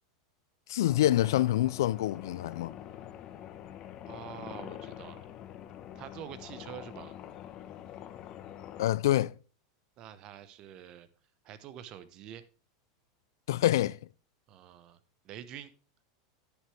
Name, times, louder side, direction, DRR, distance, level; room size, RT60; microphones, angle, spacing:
voice 1, 0.7-2.7 8.8-9.3 13.5-14.0, left 13 dB, 85° left, 0.4 m, -26 dB
sound 1, 0.9-8.9, left 11 dB, 35° left, 0.9 m, -45 dB
voice 2, 4.0-5.3 5.9-7.1 10.0-11.1 11.4-12.4 14.5-15.0 15.2-15.7, right 10 dB, 40° right, 1.0 m, -46 dB
9.8 x 9.7 x 3.3 m
supercardioid pair, 145°, 2 cm